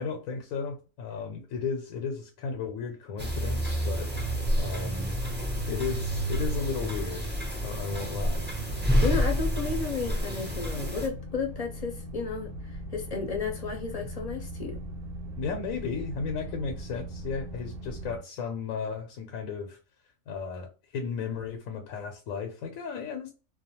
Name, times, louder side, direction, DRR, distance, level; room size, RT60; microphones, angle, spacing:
voice 1, 0.0-4.1 4.6-5.2 5.7-8.5 15.4-19.8 20.3-23.3, left 5 dB, 85° left, 1.1 m, -34 dB
sound 1, 3.2-11.1, equal, 15° right, 0.4 m, -29 dB
sound 2, 4.1-18.2, right 2 dB, 55° right, 0.7 m, -40 dB
voice 2, 9.0-12.5 12.9-14.8, left 4 dB, 45° left, 0.5 m, -32 dB
2.4 x 2.2 x 2.8 m
omnidirectional pair, 1.4 m